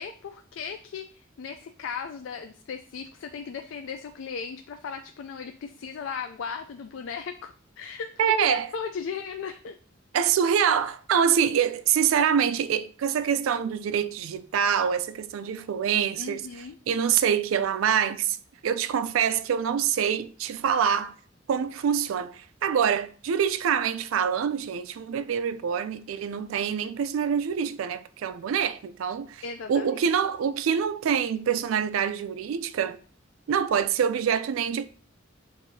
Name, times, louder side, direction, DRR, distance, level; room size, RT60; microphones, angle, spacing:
voice 1, 0.0-9.8 16.2-16.8 29.4-30.0, left 6 dB, 70° left, 0.3 m, -36 dB
voice 2, 8.2-8.7 10.1-18.4 18.6-21.1 21.5-29.4 29.7-33.0 33.5-34.9, right 8 dB, 85° right, 0.3 m, -25 dB
7.2 x 2.6 x 2.7 m
head